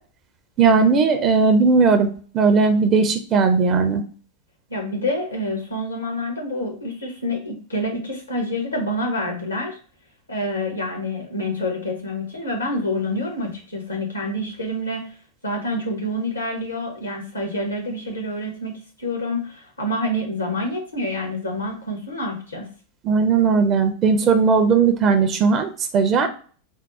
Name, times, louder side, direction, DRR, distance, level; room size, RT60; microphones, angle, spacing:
voice 1, 0.6-2.1 2.3-4.0 23.0-26.3, right 5 dB, 30° right, 7 dB, 0.5 m, -17 dB
voice 2, 4.7-9.8 10.3-15.2 15.4-22.7, left 1 dB, 80° left, 1 dB, 1.2 m, -27 dB
3.6 x 2.0 x 4.1 m, 0.41 s
figure-of-eight pair, 90°, 0 cm